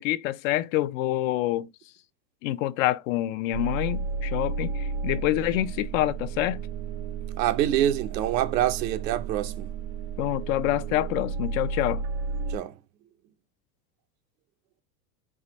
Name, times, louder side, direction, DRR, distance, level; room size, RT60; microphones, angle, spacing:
voice 1, 0.0-1.7 2.4-6.6 10.2-12.0, left 15 dB, 55° left, 0.5 m, -27 dB
sound 1, 3.5-12.6, right 4 dB, 45° right, 0.6 m, -33 dB
voice 2, 7.4-9.7 12.5-12.7, right 12 dB, 80° right, 0.9 m, -25 dB
4.9 x 2.4 x 4.0 m
supercardioid pair, 140°, 49 cm